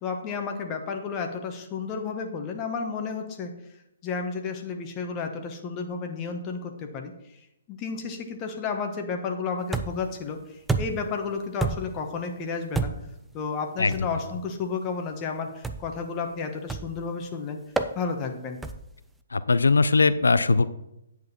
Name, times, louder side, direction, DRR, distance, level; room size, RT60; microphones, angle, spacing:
voice 1, 0.0-3.5 4.0-7.4 7.7-12.9 13.3-17.6 17.9-18.6, left 5 dB, 25° left, 4 dB, 1.3 m, -32 dB
sound 1, 9.7-10.1 10.7-11.1 11.6-12.0 12.7-13.2 13.9-14.1 15.6-16.0 16.7-17.0 17.8-18.0 18.6-19.0, right 3 dB, 5° right, 0.5 m, -29 dB
voice 2, 19.3-20.7, left 4 dB, 75° left, 14 dB, 0.5 m, -20 dB
9.4 x 7.9 x 4.3 m, 0.85 s
figure-of-eight pair, 130°, 0 cm